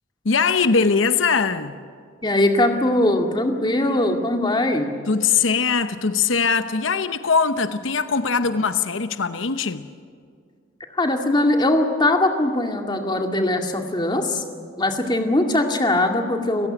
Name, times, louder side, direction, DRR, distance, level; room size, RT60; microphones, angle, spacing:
voice 1, 0.2-1.7 5.1-9.9, left 5 dB, 90° left, 0.9 m, -21 dB
voice 2, 2.2-4.9 10.9-14.4 14.8-16.7, left 1 dB, 25° left, 2.2 m, -21 dB
30.0 x 16.0 x 9.1 m
head